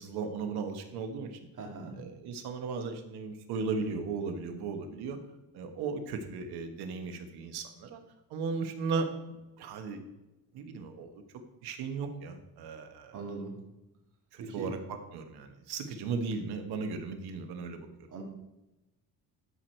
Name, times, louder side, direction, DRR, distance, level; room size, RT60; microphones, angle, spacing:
voice 1, 0.0-1.4 2.0-5.2 5.5-8.0 8.3-10.0 10.5-13.2 14.3-17.9, right 4 dB, 75° right, 7 dB, 1.2 m, -36 dB
voice 2, 1.6-2.0 13.1-13.6 14.4-14.7 18.1-18.2, right 3 dB, 50° right, 1 dB, 1.9 m, -40 dB
12.5 x 4.7 x 4.4 m, 1.0 s
cardioid pair, 150°, 38 cm